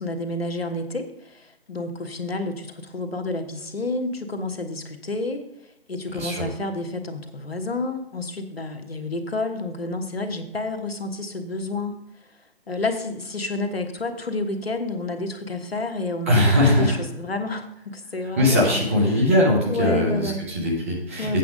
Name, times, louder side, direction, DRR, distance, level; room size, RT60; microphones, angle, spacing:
voice 1, 0.0-5.4 5.9-12.0 12.7-18.8 19.1-19.2 19.7-20.5 21.2-21.4, left 2 dB, 65° left, 6 dB, 1.4 m, -30 dB
voice 2, 6.1-6.5 16.3-17.0 18.4-21.4, left 1 dB, 15° right, -2 dB, 1.0 m, -20 dB
8.4 x 7.2 x 5.2 m, 0.83 s
figure-of-eight pair, 155°, 32 cm